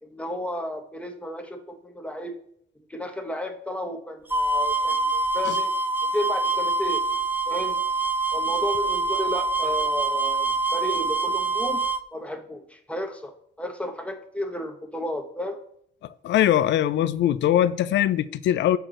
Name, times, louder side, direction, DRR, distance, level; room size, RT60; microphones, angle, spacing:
voice 1, 0.0-2.3 2.8-5.7 6.0-7.0 7.5-7.8 8.3-15.6, left 1 dB, 5° left, 1.1 m, -33 dB
sound 1, 4.3-12.0, right 3 dB, 10° right, 0.4 m, -25 dB
voice 2, 16.2-18.8, left 11 dB, 65° left, 0.4 m, -21 dB
6.6 x 4.4 x 3.8 m
cardioid pair, 90°, 20 cm